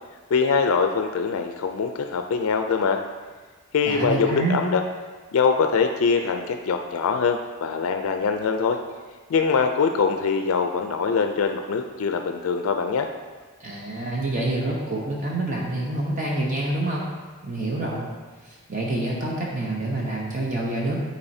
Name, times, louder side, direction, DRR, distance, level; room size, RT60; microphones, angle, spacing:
voice 1, 0.3-3.0 3.7-4.8 5.3-8.8 9.3-13.1, left 5 dB, 70° left, 6 dB, 0.3 m, -23 dB
voice 2, 3.9-4.6 13.6-17.1 17.4-18.1 18.4-21.0, right 2 dB, 35° right, -3 dB, 0.7 m, -27 dB
8.7 x 4.2 x 2.7 m, 1.4 s
head